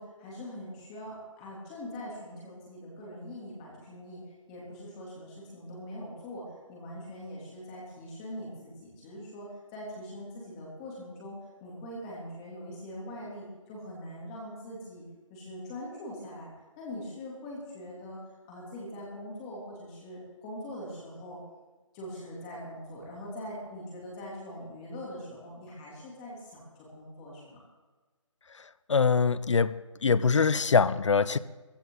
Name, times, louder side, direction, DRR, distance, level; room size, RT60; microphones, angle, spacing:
voice 1, 0.0-4.2 4.5-15.0 15.3-18.2 18.4-21.4 21.9-27.6, equal, 15° left, -4 dB, 3.0 m, -42 dB
voice 2, 28.9-29.8 30.0-31.4, left 5 dB, 65° left, 17 dB, 0.7 m, -23 dB
17.0 x 15.5 x 3.9 m, 1.3 s
hypercardioid pair, 170°, 17 cm